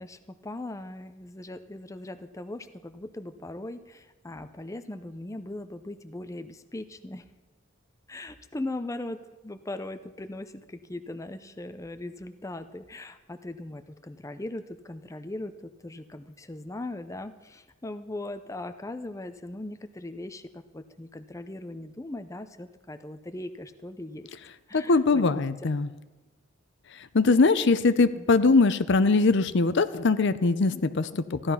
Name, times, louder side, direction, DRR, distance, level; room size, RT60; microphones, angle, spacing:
voice 1, 0.0-7.2 8.1-24.3 24.7-25.2 28.1-28.3, left 2 dB, 15° left, 9 dB, 0.6 m, -39 dB
voice 2, 24.7-25.9 27.1-31.5, left 3 dB, 60° left, 13 dB, 0.6 m, -22 dB
15.0 x 11.5 x 5.6 m, 1.2 s
head